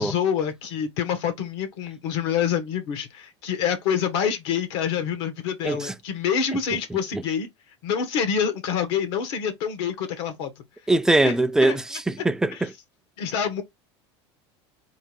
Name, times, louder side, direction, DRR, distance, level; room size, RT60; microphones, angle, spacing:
voice 1, 0.0-7.5 7.8-10.5 11.2-11.3 11.6-11.8 12.5-12.6 13.2-13.6, left 7 dB, 75° left, 1.2 m, -26 dB
voice 2, 10.9-12.7, right 2 dB, 5° right, 0.4 m, -22 dB
3.9 x 2.3 x 3.7 m
supercardioid pair, 100°, 14 cm